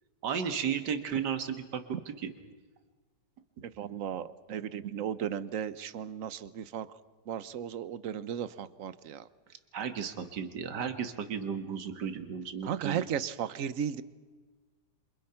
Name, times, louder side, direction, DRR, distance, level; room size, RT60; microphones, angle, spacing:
voice 1, 0.2-2.3 9.7-13.0, right 7 dB, 70° right, 8 dB, 2.2 m, -34 dB
voice 2, 3.6-6.9 7.3-9.3 12.7-14.0, right 8 dB, 55° right, 15 dB, 1.2 m, -35 dB
28.5 x 27.0 x 5.8 m, 1.4 s
omnidirectional pair, 1.9 m